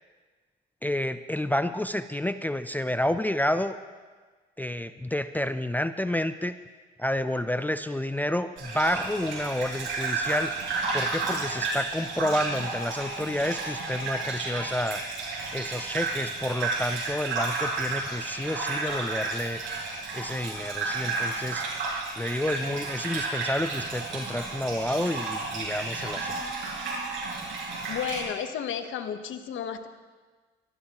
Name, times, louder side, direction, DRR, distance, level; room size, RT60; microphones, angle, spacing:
voice 1, 0.8-3.8 4.6-6.6 7.0-10.5 10.9-15.0 15.5-19.6 20.1-21.6 22.2-26.4, left 1 dB, 10° left, 11 dB, 0.4 m, -29 dB
Gurgling / Bathtub (filling or washing), 8.6-28.2, right 3 dB, 75° right, 5.2 m, -32 dB
voice 2, 27.9-29.9, left 8 dB, 75° left, 9 dB, 1.0 m, -32 dB
22.0 x 14.0 x 3.0 m, 1.4 s
cardioid pair, 90°, 20 cm